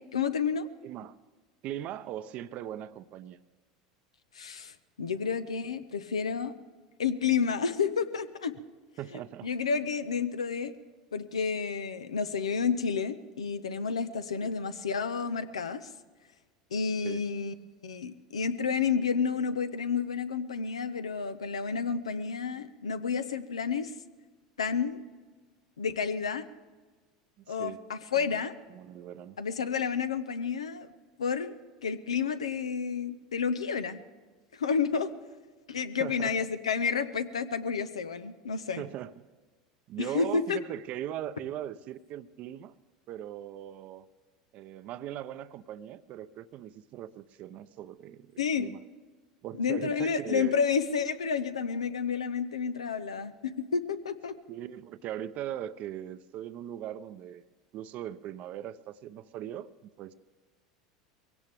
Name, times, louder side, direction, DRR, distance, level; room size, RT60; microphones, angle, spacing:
voice 1, 0.1-0.7 4.3-6.5 7.0-8.5 9.4-10.7 11.1-15.9 16.7-17.5 17.8-23.9 24.6-25.0 25.8-26.5 27.5-28.5 29.4-30.9 31.2-31.5 31.8-34.0 34.6-35.1 35.7-38.8 40.0-40.6 48.4-48.7 49.6-54.3, left 6 dB, 90° left, 11 dB, 0.9 m, -30 dB
voice 2, 0.8-1.2 1.6-3.4 9.0-9.5 14.4-14.6 17.0-17.2 27.5-27.8 28.1-28.4 28.7-29.4 36.0-36.5 38.8-39.3 39.9-42.7 43.1-44.1 44.5-48.8 49.4-50.6 54.5-57.4 57.7-59.7 60.0-60.1, right 11 dB, 50° right, 12 dB, 0.6 m, -39 dB
22.0 x 17.0 x 3.5 m, 1.4 s
hypercardioid pair, 85°, 3 cm